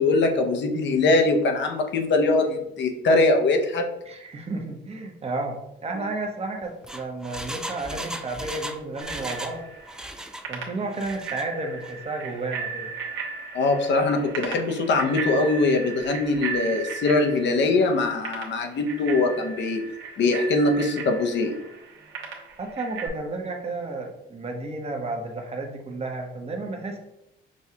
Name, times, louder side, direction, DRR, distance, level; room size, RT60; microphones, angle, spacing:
voice 1, 0.0-3.9 13.5-19.8 20.2-21.5, left 3 dB, 65° left, 4 dB, 0.7 m, -22 dB
voice 2, 4.1-9.6 10.5-12.9 22.6-27.0, right 2 dB, 30° right, 3 dB, 0.9 m, -32 dB
Engine, 6.6-9.6 9.8-10.5 10.9-11.5 11.8-11.9, right 1 dB, 5° right, 0.3 m, -36 dB
Bicycle bell, 9.0-23.1, right 5 dB, 75° right, 1.1 m, -36 dB
6.2 x 2.3 x 2.8 m, 0.85 s
cardioid pair, 90°, 20 cm